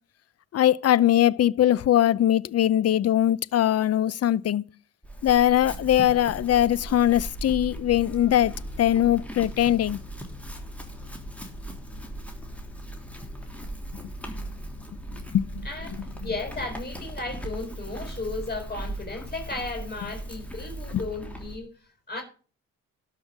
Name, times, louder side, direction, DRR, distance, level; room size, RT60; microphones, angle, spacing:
voice 1, 0.5-4.6 5.2-10.0 15.3-15.7, left 11 dB, 55° left, 0.7 m, -21 dB
Chewing mastication / Livestock farm animals working animals, 5.0-21.6, right 1 dB, 5° left, 3.2 m, -38 dB
voice 2, 16.2-21.7 22.1-22.2, left 3 dB, 25° left, 5.3 m, -34 dB
12.5 x 5.7 x 8.2 m
cardioid pair, 90°, 30 cm